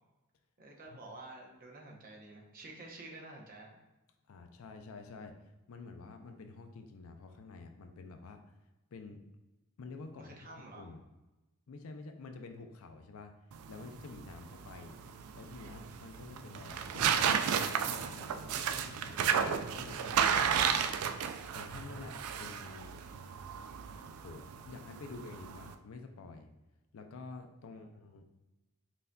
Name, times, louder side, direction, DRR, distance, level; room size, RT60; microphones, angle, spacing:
voice 1, 0.6-3.8 10.2-10.9 27.7-28.0, right 2 dB, 40° right, 0 dB, 0.7 m, -50 dB
voice 2, 4.3-5.3 5.7-8.6 8.9-9.2 9.8-11.0 11.7-13.3 13.7-15.0 15.3-20.9 21.5-23.0 24.2-26.5 26.9-28.2, left 3 dB, 70° left, 6 dB, 0.4 m, -49 dB
sound 1, 13.5-25.7, right 7 dB, 75° right, 0.3 m, -33 dB
5.6 x 2.6 x 2.2 m, 1.0 s
head